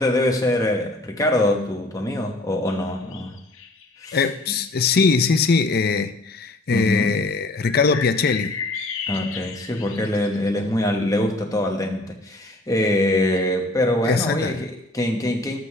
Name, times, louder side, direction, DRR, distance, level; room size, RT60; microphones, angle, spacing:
voice 1, 0.0-3.4 4.0-4.2 6.7-7.1 9.1-15.6, left 1 dB, 15° left, 1.0 m, -23 dB
sound 1, 2.7-4.6 7.6-10.6, left 7 dB, 80° left, 0.7 m, -34 dB
voice 2, 4.1-8.6 14.0-14.7, left 5 dB, 45° left, 0.4 m, -21 dB
12.0 x 7.6 x 3.2 m
head